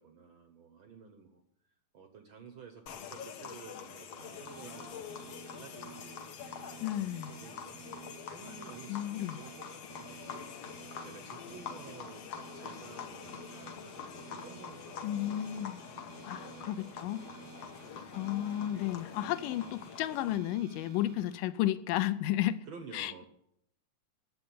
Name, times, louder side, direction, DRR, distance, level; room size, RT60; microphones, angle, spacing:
voice 1, 0.0-1.4 1.9-6.0 6.7-10.4 11.0-15.8 16.4-18.2 22.6-23.2, right 6 dB, 75° right, 1.1 m, -53 dB
sound 1, 2.9-20.4, left 7 dB, 65° left, 1.7 m, -46 dB
sound 2, 4.2-21.4, right 7 dB, 50° right, 1.0 m, -53 dB
voice 2, 6.8-7.3 8.9-9.4 15.0-15.8 16.2-17.2 18.1-22.7 22.9-23.3, left 13 dB, 90° left, 2.3 m, -33 dB
10.5 x 7.9 x 9.8 m
omnidirectional pair, 3.7 m